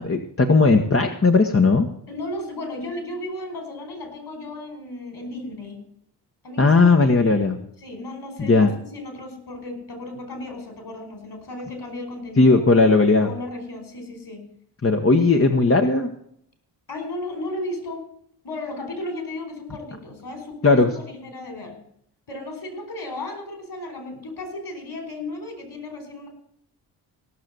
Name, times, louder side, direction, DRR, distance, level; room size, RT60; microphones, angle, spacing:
voice 1, 0.0-1.9 6.6-7.6 8.4-8.7 12.4-13.3 14.8-16.1 20.6-20.9, left 3 dB, 25° left, 4 dB, 1.5 m, -17 dB
voice 2, 2.1-5.8 6.4-7.4 7.8-12.7 13.2-14.4 16.9-18.0 18.4-21.8 22.3-26.3, left 2 dB, 50° left, 6 dB, 5.3 m, -34 dB
17.0 x 6.5 x 7.9 m, 0.69 s
supercardioid pair, 45°, 48 cm